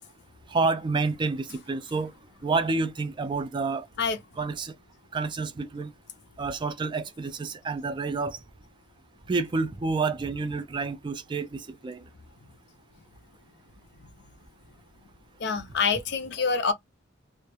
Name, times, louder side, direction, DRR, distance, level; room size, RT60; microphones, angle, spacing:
voice 1, 0.5-2.1 2.4-3.9 4.4-4.7 5.1-5.9 6.4-8.4 9.3-12.0, right 3 dB, 25° right, 0.3 m, -29 dB
voice 2, 15.4-16.7, left 5 dB, 60° left, 0.5 m, -26 dB
2.3 x 2.0 x 2.9 m
head